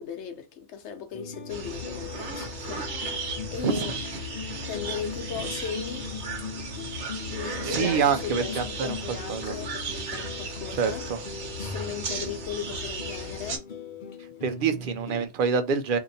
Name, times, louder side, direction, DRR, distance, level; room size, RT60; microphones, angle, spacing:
voice 1, 0.0-4.0 4.5-6.1 7.3-11.0 11.6-13.7, left 7 dB, 75° left, 1.0 m, -37 dB
sound 1, 1.1-15.3, left 5 dB, 50° left, 0.8 m, -39 dB
sound 2, 1.5-13.6, right 2 dB, 75° right, 1.2 m, -35 dB
voice 2, 7.6-9.6 10.8-11.2 14.4-16.0, right 6 dB, 55° right, 0.7 m, -27 dB
2.8 x 2.5 x 4.0 m
omnidirectional pair, 1.2 m